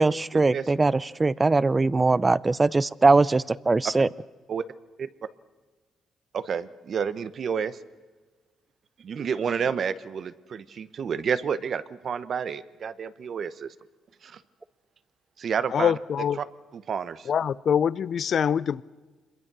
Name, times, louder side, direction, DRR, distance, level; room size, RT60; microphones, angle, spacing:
voice 1, 0.0-4.1, right 3 dB, 25° right, 0.6 m, -21 dB
voice 2, 6.3-7.8 9.0-13.7 14.2-14.4 15.4-15.9 16.7-17.3, right 7 dB, 55° right, 1.0 m, -30 dB
voice 3, 15.7-16.4 17.3-18.8, left 8 dB, 55° left, 0.6 m, -24 dB
26.0 x 22.0 x 6.2 m
cardioid pair, 90°, 0 cm